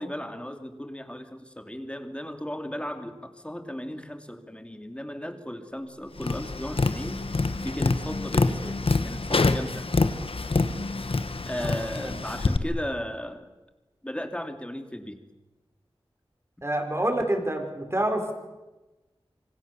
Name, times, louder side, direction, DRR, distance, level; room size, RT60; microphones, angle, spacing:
voice 1, 0.0-7.3 7.6-9.9 11.5-13.5 14.0-15.3, equal, 10° left, 7 dB, 3.0 m, -36 dB
Tap, 6.2-12.6, left 3 dB, 75° left, 1.6 m, -26 dB
voice 2, 11.6-12.2 16.6-18.3, right 1 dB, 25° right, 4 dB, 5.7 m, -28 dB
26.0 x 26.0 x 7.2 m, 1.1 s
wide cardioid pair, 65°, 10 cm